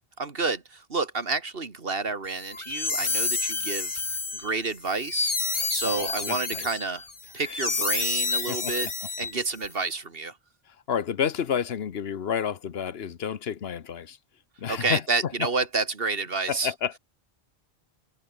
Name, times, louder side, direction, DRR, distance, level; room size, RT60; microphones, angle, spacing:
voice 1, 0.2-3.9 4.3-5.4 5.7-7.0 7.3-8.9 9.2-10.3 14.7-16.7, right 4 dB, 65° right, 2.2 m, -29 dB
sound 1, 2.4-9.7, left 3 dB, 30° left, 1.2 m, -29 dB
voice 2, 5.8-6.7 7.5-7.6 8.5-8.7 10.9-14.2 14.6-15.5 16.5-17.0, left 8 dB, 75° left, 1.2 m, -30 dB
omnidirectional pair, 1.0 m